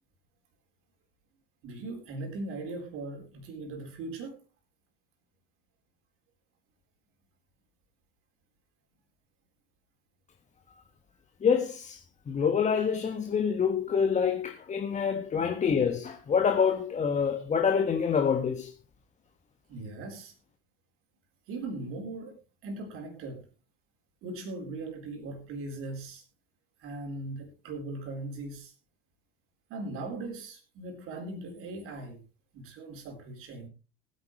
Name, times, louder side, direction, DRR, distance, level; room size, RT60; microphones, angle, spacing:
voice 1, 1.6-4.4 15.3-15.6 19.7-20.3 21.5-22.3 22.6-23.5 24.2-26.2 26.8-28.7 29.7-32.2 32.5-33.7, right 2 dB, 50° right, 3.9 m, -39 dB
voice 2, 11.4-12.0 12.3-18.7, left 6 dB, 25° left, 1.5 m, -26 dB
20.0 x 9.8 x 3.2 m
figure-of-eight pair, 70°, 29 cm